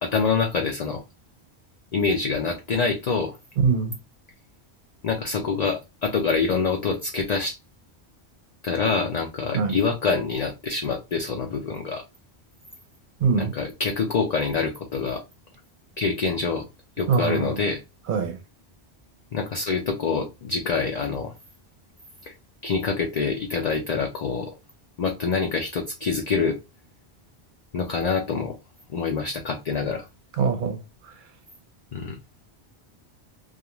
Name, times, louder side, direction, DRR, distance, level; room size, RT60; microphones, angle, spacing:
voice 1, 0.0-1.0 1.9-3.3 5.0-7.6 8.6-12.0 13.3-15.2 16.0-16.6 17.0-17.8 19.3-21.3 22.3-22.4 22.6-24.5 25.0-26.6 27.7-28.5 28.9-30.0 31.9-32.2, left 5 dB, 55° left, 0.4 m, -26 dB
voice 2, 3.6-4.0 9.5-9.8 13.2-13.5 17.1-17.5 18.1-18.4 30.4-30.8, right 5 dB, 55° right, 0.7 m, -22 dB
2.4 x 2.3 x 2.9 m
omnidirectional pair, 1.1 m